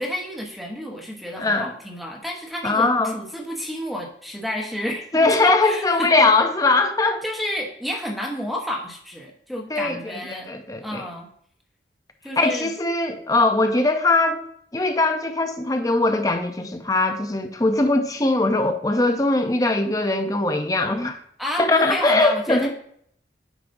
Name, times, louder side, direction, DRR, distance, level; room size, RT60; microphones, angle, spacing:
voice 1, 0.0-6.3 7.2-10.5 10.8-11.3 12.2-12.7 21.4-22.7, equal, ahead, 1.0 m, -30 dB
voice 2, 1.4-1.7 2.6-3.1 5.1-7.2 9.7-10.0 10.3-11.0 12.4-14.4 14.7-21.2 21.6-22.7, left 2 dB, 20° left, 0.6 m, -21 dB
9.4 x 5.0 x 2.6 m
head